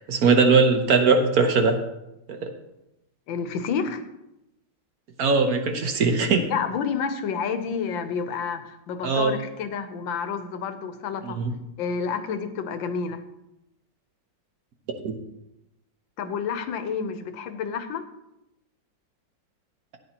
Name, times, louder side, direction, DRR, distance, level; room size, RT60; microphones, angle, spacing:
voice 1, 0.1-1.8 2.3-2.5 5.2-6.5 9.0-9.3 11.2-11.5 15.0-15.1, right 4 dB, 55° right, 5 dB, 1.3 m, -20 dB
voice 2, 3.3-4.0 6.5-11.4 11.8-13.2 16.2-18.0, left 6 dB, 85° left, 9 dB, 1.6 m, -29 dB
14.0 x 9.3 x 2.9 m, 0.89 s
omnidirectional pair, 2.0 m